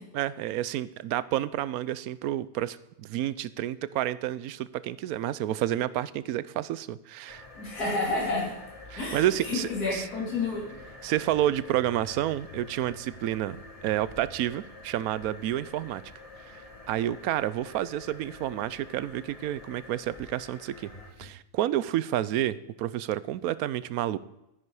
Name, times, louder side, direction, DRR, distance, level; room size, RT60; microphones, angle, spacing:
voice 1, 0.1-7.5 8.9-10.0 11.0-16.0 16.4-20.9 21.2-24.2, right 12 dB, 75° right, 17 dB, 1.0 m, -30 dB
sound 1, 7.3-21.3, left 2 dB, 25° left, 1.5 m, -47 dB
voice 2, 7.5-8.7 9.0-10.7, left 3 dB, 90° left, -2 dB, 3.4 m, -30 dB
12.0 x 10.0 x 4.7 m, 0.90 s
omnidirectional pair, 1.6 m